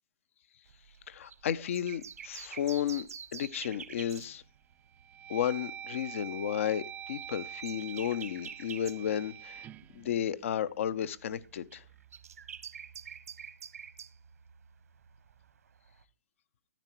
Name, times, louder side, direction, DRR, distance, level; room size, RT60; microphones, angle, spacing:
sound 1, 0.7-5.0 5.3-5.6 6.1-10.4 10.6-16.0, right 7 dB, 75° right, 1.4 m, -48 dB
voice 1, 1.1-4.4 5.3-9.7 9.9-11.8, left 10 dB, 55° left, 0.9 m, -33 dB
sound 2, 4.2-4.4 4.9-11.0, right 10 dB, 20° right, 0.5 m, -45 dB
13.5 x 9.8 x 4.6 m
hypercardioid pair, 130°, 8 cm